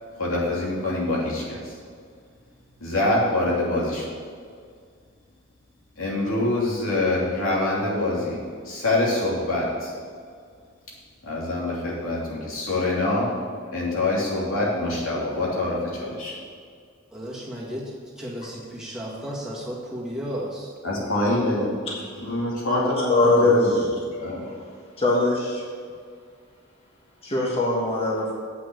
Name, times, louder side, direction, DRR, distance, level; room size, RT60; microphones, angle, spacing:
voice 1, 0.2-1.8 2.8-4.1 6.0-9.9 11.2-13.3 13.7-16.4 20.8-21.7 22.2-23.9 24.2-24.5, left 2 dB, 90° left, -5 dB, 3.0 m, -25 dB
voice 2, 17.1-17.9 18.2-20.7, equal, 5° right, -6 dB, 1.8 m, -33 dB
voice 3, 23.1-23.6 25.0-25.6 27.2-28.3, left 3 dB, 30° left, -3 dB, 1.3 m, -21 dB
8.1 x 6.0 x 7.8 m, 2.1 s
head